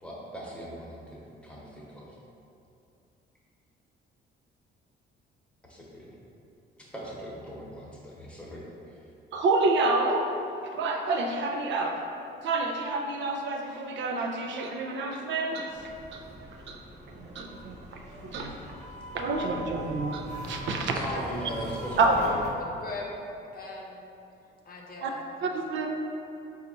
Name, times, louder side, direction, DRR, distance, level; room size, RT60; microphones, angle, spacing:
voice 1, 0.0-2.2 5.7-6.1 6.8-8.9 20.9-22.3, equal, 5° left, -6 dB, 1.0 m, -40 dB
voice 2, 9.3-10.3 10.8-12.0 12.4-15.7 16.1-16.2 16.7-16.8 17.1-17.8 18.2-18.5 19.1-20.9 22.0-22.1 25.0-25.1 25.4-25.9, right 3 dB, 70° right, 2 dB, 0.4 m, -28 dB
sound 1, 15.7-22.5, right 1 dB, 35° right, 0.7 m, -41 dB
voice 3, 22.8-23.3 23.5-24.0 24.7-25.5, left 3 dB, 45° left, -2 dB, 0.6 m, -40 dB
4.1 x 2.4 x 3.9 m, 2.7 s
cardioid pair, 90°, 20 cm